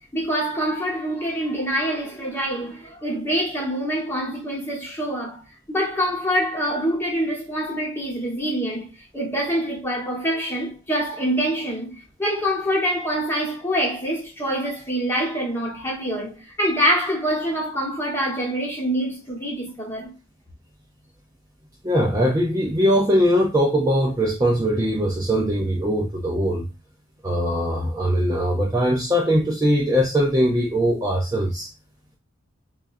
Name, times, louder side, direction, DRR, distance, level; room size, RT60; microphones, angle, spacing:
voice 1, 0.1-5.4 5.7-20.1, equal, 10° left, 1.2 m, -25 dB
voice 2, 21.8-26.7 27.2-31.7, equal, 15° right, 0.4 m, -21 dB
5.1 x 2.4 x 2.5 m
head